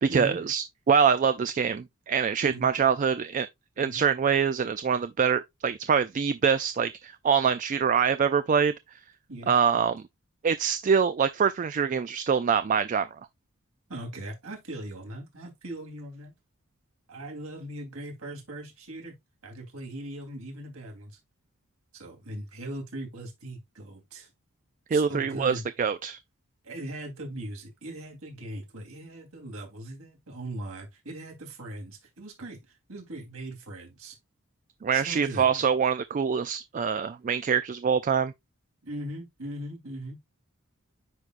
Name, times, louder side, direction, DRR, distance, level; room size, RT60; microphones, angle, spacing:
voice 1, 0.0-3.5 3.8-8.7 9.5-10.0 10.4-13.1 24.9-26.2 34.8-38.3, right 6 dB, 35° right, 0.3 m, -24 dB
voice 2, 13.9-16.3 17.1-19.1 19.4-21.2 21.9-24.3 24.9-25.7 26.6-34.2 34.9-35.5 38.8-40.2, right 1 dB, 75° right, 3.3 m, -39 dB
9.8 x 4.6 x 2.5 m
head